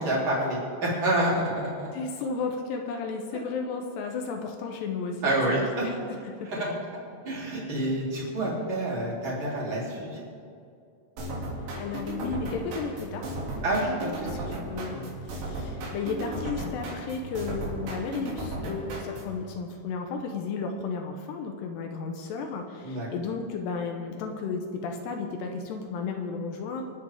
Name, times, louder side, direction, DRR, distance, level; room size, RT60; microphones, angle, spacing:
voice 1, 0.0-1.9 5.2-5.8 6.5-6.7 7.2-10.2 13.6-14.5 14.9-15.0 22.8-23.1, right 1 dB, 30° right, -5 dB, 3.6 m, -28 dB
voice 2, 1.9-6.7 11.8-13.3 14.2-26.8, left 4 dB, 75° left, 4 dB, 3.0 m, -34 dB
sound 1, 11.2-19.4, right 1 dB, 70° right, 4.7 m, -35 dB
28.0 x 9.4 x 3.6 m, 2.4 s
omnidirectional pair, 5.1 m